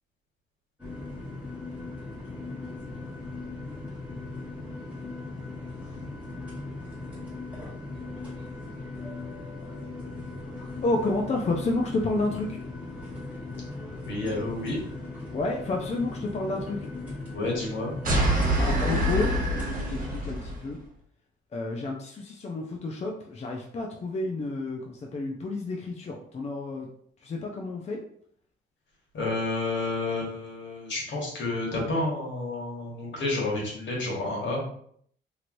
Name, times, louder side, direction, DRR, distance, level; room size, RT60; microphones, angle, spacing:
sound 1, 0.8-20.3, left 2 dB, 5° right, 1.4 m, -38 dB
voice 1, 10.8-12.6 15.3-16.9 18.6-19.4 19.9-20.8 21.5-26.9 27.2-28.0, left 2 dB, 35° left, 1 dB, 0.5 m, -30 dB
voice 2, 14.0-14.8 17.3-17.9 29.1-34.6, left 2 dB, 65° left, -3 dB, 1.5 m, -30 dB
sound 2, 18.0-20.6, equal, 45° right, 1.1 m, -25 dB
3.0 x 2.9 x 2.5 m, 0.64 s
cardioid pair, 90°, 20 cm